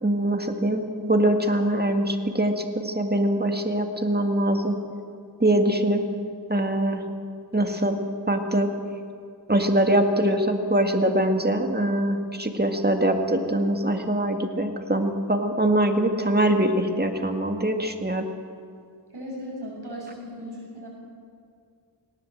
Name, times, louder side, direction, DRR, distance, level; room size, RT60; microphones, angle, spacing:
voice 1, 0.0-4.8 5.4-6.0 6.5-7.0 7.5-8.0 8.3-8.7 9.5-18.3, right 1 dB, 20° right, 4 dB, 2.0 m, -23 dB
voice 2, 5.8-6.1 19.1-20.9, equal, 65° right, -3 dB, 7.3 m, -37 dB
19.0 x 18.0 x 7.8 m, 2.3 s
wide cardioid pair, 65°, 43 cm